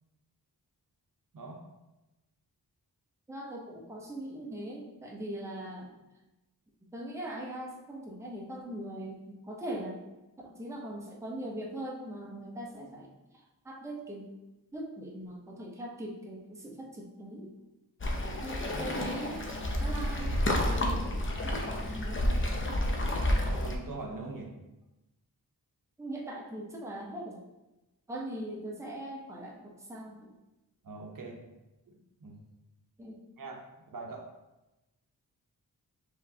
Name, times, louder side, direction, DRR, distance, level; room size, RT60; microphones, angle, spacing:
voice 1, 3.3-5.9 6.9-10.0 10.4-13.1 13.6-14.2 14.7-17.5 18.4-19.5 19.8-22.4 26.0-27.4 28.1-30.3 33.0-33.2, right 1 dB, 5° right, -2 dB, 0.7 m, -41 dB
Waves surf, 18.0-23.8, left 1 dB, 30° left, 0.6 m, -30 dB
voice 2, 23.0-24.5 30.8-31.4 31.9-32.4 33.4-33.6 33.9-34.2, right 3 dB, 55° right, 0 dB, 0.7 m, -42 dB
4.8 x 3.2 x 2.7 m, 1.0 s
wide cardioid pair, 90°, 39 cm